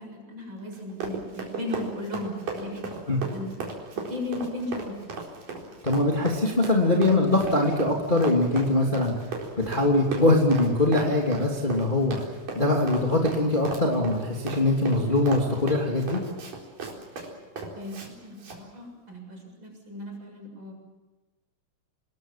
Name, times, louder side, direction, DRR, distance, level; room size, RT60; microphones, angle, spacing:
voice 1, 0.0-2.9 3.2-3.5 3.9-5.1 17.7-20.7, left 2 dB, 35° right, 1 dB, 7.9 m, -36 dB
Run, 0.7-18.1 18.4-18.6, right 4 dB, 85° right, 5.9 m, -36 dB
voice 2, 5.8-9.1 9.6-12.2 12.5-16.2, left 2 dB, 15° left, -1 dB, 2.9 m, -22 dB
29.0 x 21.0 x 7.6 m, 1.2 s
omnidirectional pair, 3.7 m